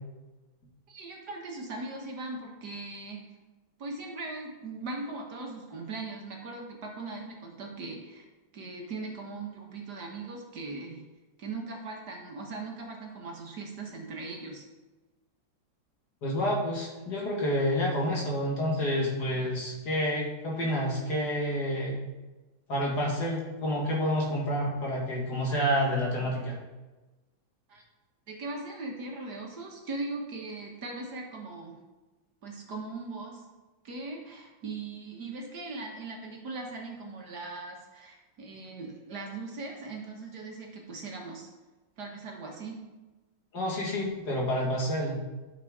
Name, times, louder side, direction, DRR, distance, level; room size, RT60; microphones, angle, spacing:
voice 1, 0.9-3.3 3.8-8.2 8.5-11.0 11.4-14.6 27.7-27.8 28.3-31.8 32.4-33.4 33.8-41.5 42.0-42.8, right 3 dB, 55° right, 0 dB, 1.8 m, -39 dB
voice 2, 16.2-22.0 22.7-26.6 43.5-45.2, equal, 55° left, -2 dB, 2.3 m, -29 dB
12.0 x 6.0 x 3.6 m, 1.2 s
omnidirectional pair, 2.1 m